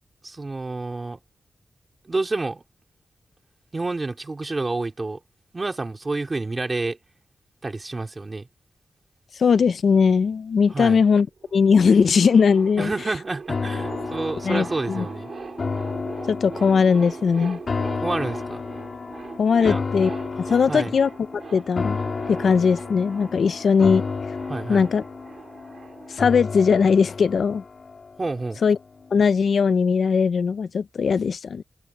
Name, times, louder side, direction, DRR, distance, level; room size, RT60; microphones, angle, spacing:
voice 1, 0.2-1.2 2.0-2.6 3.7-5.2 5.5-7.0 7.6-8.5 10.7-11.0 12.8-15.3 18.0-18.6 19.6-19.8 20.7-21.0 24.5-24.9 28.2-28.6, right 3 dB, 25° right, 3.4 m, -29 dB
voice 2, 9.3-11.3 11.5-12.9 14.4-15.0 16.3-17.6 19.4-20.1 20.5-21.1 21.5-22.0 22.3-24.0 24.7-25.0 26.1-27.6 28.6-28.8 29.1-31.6, left 6 dB, 65° left, 0.5 m, -19 dB
sound 1, 11.4-27.3, right 5 dB, 50° right, 3.0 m, -40 dB
sound 2, 13.5-28.8 29.2-29.3, left 4 dB, 45° left, 3.0 m, -32 dB
open air
wide cardioid pair, 170°, 0 cm